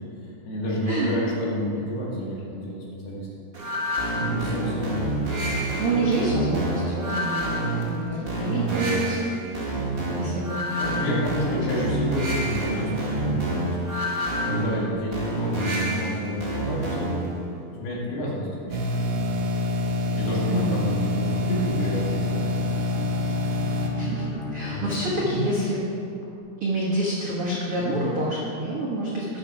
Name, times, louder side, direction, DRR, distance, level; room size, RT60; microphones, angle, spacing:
voice 1, 0.5-3.3 4.1-5.4 9.9-10.4 10.8-13.8 14.4-17.2 17.7-18.9 19.2-19.3 20.1-22.8 23.4-23.6 24.3-24.9 25.2-25.4 27.8-28.0, left 1 dB, 85° left, -5 dB, 4.0 m, -30 dB
sound 1, 3.5-17.3, right 1 dB, 35° right, 0.9 m, -27 dB
voice 2, 5.6-9.6 10.1-10.7 11.8-12.1 20.5-20.8 23.9-24.2 24.5-25.9 26.6-29.2, right 1 dB, 60° right, -7 dB, 1.5 m, -27 dB
sound 2, 18.7-23.9, left 2 dB, 80° right, 3.0 m, -26 dB
Bowed string instrument, 21.2-25.7, left 4 dB, 60° left, 4.0 m, -37 dB
12.0 x 6.5 x 4.8 m, 2.6 s
omnidirectional pair, 4.5 m